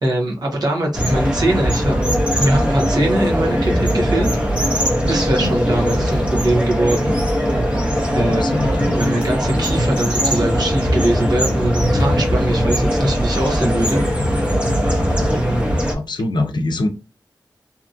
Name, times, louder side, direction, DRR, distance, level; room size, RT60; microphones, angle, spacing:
voice 1, 0.0-2.0 2.4-4.3 5.1-7.1 8.1-8.4 8.9-14.0 15.3-15.7, right 1 dB, 60° right, -1 dB, 0.9 m, -21 dB
sound 1, 0.9-15.9, equal, 15° right, 0.7 m, -19 dB
voice 2, 8.3-8.9 15.9-16.9, left 2 dB, 75° left, 4 dB, 0.5 m, -23 dB
2.8 x 2.4 x 2.5 m, 0.30 s
wide cardioid pair, 100°, 8 cm